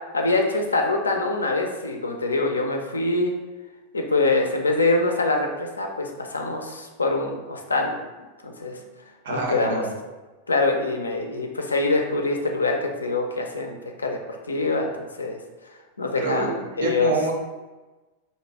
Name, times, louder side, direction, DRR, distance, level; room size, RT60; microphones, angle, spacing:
voice 1, 0.1-3.3 3.9-8.0 8.4-8.8 9.3-9.8 10.5-14.2 14.5-15.4 16.0-17.1, left 2 dB, 75° left, 3 dB, 0.3 m, -24 dB
voice 2, 9.2-9.9 16.2-16.5 16.8-17.3, right 3 dB, 60° right, 1 dB, 0.5 m, -26 dB
2.7 x 2.1 x 2.7 m, 1.2 s
figure-of-eight pair, 90°, 0 cm